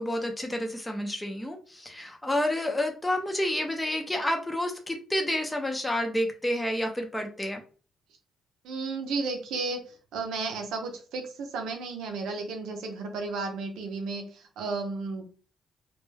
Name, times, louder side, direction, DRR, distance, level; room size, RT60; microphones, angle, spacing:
voice 1, 0.0-7.6, left 1 dB, 10° left, 3 dB, 0.5 m, -29 dB
voice 2, 8.6-9.8 10.1-15.4, right 3 dB, 85° right, 4 dB, 0.6 m, -33 dB
2.2 x 2.1 x 3.1 m, 0.39 s
cardioid pair, 90°, 0 cm